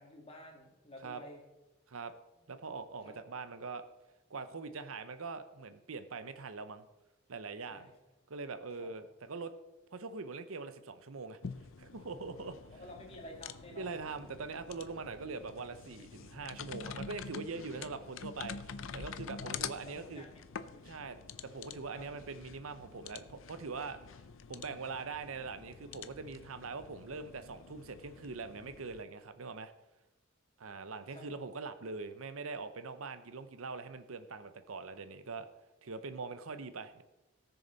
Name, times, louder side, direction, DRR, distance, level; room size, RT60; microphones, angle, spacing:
voice 1, 0.0-1.4 2.3-2.5 3.0-3.2 7.7-7.9 8.7-8.9 12.3-13.9 19.3-20.8 21.9-22.2 31.1-31.4 36.5-36.6, left 1 dB, 30° left, 0 dB, 2.3 m, -52 dB
voice 2, 2.5-3.8 4.3-6.9 7.3-7.9 8.3-9.5 9.9-11.4 11.8-12.6 13.7-20.2 20.9-24.0 24.5-29.7 30.6-35.5 35.8-37.0, right 4 dB, 90° right, 11 dB, 0.8 m, -43 dB
sound 1, 11.4-29.0, left 6 dB, 75° left, 0.6 m, -47 dB
18.5 x 6.7 x 4.0 m, 1.0 s
head